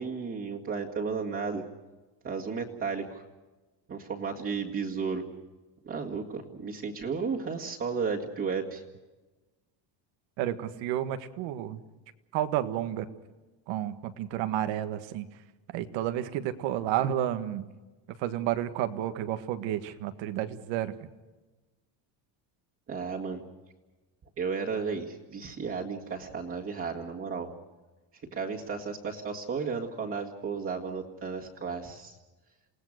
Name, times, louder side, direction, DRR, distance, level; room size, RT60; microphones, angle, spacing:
voice 1, 0.0-1.6 2.2-3.2 3.9-5.3 5.8-8.8 22.9-23.4 24.4-27.5 28.3-32.2, right 5 dB, 30° right, -3 dB, 1.9 m, -33 dB
voice 2, 10.4-11.8 12.3-13.1 13.7-15.3 15.7-17.6 18.2-20.9, right 12 dB, 90° right, 10 dB, 1.7 m, -31 dB
28.5 x 18.0 x 6.5 m, 1.2 s
cardioid pair, 170°, 44 cm